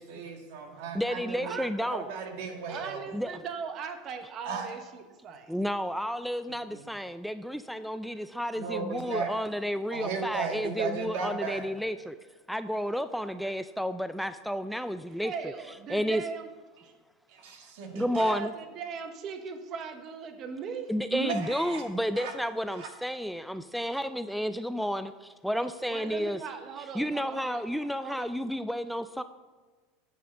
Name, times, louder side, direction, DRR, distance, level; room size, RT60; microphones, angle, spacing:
voice 1, 0.0-1.6 1.9-3.0 4.4-4.7 6.7-6.8 8.5-9.3 9.9-11.6 17.3-18.3 21.1-21.8 22.1-22.3 22.7-22.9, right 5 dB, 70° right, 3 dB, 1.6 m, -35 dB
voice 2, 0.9-2.1 3.1-3.4 5.5-12.2 12.5-15.5 15.9-16.2 17.9-18.5 20.9-26.4 26.9-29.2, equal, ahead, 11 dB, 0.3 m, -31 dB
voice 3, 2.7-5.5 15.2-16.5 16.8-16.9 18.1-20.9 25.9-27.6 28.0-28.3, right 6 dB, 45° right, 6 dB, 1.0 m, -39 dB
9.2 x 4.2 x 6.8 m, 1.3 s
supercardioid pair, 110°, 0 cm